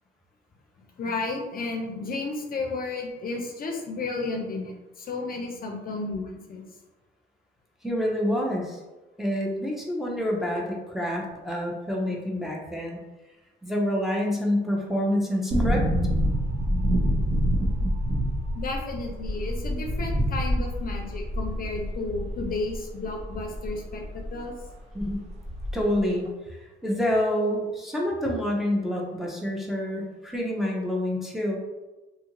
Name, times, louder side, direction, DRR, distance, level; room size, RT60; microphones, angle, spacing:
voice 1, 1.0-6.6 18.5-24.5, left 3 dB, 50° left, 1 dB, 0.5 m, -32 dB
voice 2, 7.8-8.8 9.2-13.0 13.6-15.8 24.9-25.2 25.7-26.3 26.6-31.6, equal, ahead, -2 dB, 0.6 m, -27 dB
sound 1, 15.5-24.3 24.6-24.7 25.0-26.0 26.3-26.4, equal, 35° right, 0.7 m, -27 dB
2.7 x 2.3 x 2.9 m, 1.1 s
cardioid pair, 90°, 20 cm